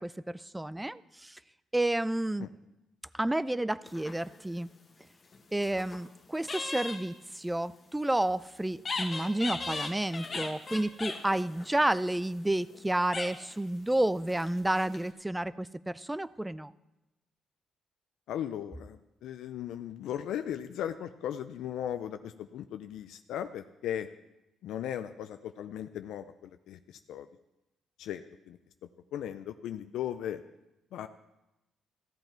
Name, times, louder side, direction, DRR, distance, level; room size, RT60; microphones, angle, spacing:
voice 1, 0.0-1.4 1.7-2.5 3.1-4.7 5.5-16.7, right 1 dB, 10° right, 18 dB, 0.4 m, -30 dB
sound 1, 3.8-4.6 5.3-6.1 6.5-7.0 8.8-12.8 13.1-13.6 14.3-15.1, left 3 dB, 40° left, 1.3 m, -38 dB
voice 2, 18.3-24.1 24.6-27.3 28.0-28.6 29.1-30.4 30.9-31.1, left 10 dB, 80° left, 9 dB, 0.4 m, -37 dB
15.0 x 8.0 x 4.4 m, 0.96 s
cardioid pair, 90°, 0 cm